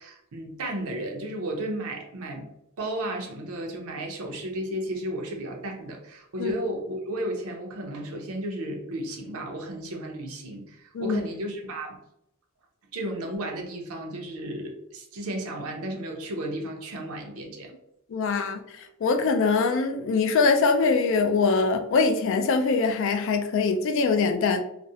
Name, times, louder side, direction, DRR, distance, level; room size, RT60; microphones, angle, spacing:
voice 1, 0.0-2.5 2.8-12.0 12.9-17.7, right 1 dB, 85° right, 2 dB, 0.6 m, -33 dB
voice 2, 18.1-24.6, left 4 dB, 60° left, 7 dB, 0.3 m, -23 dB
2.4 x 2.0 x 2.6 m, 0.79 s
head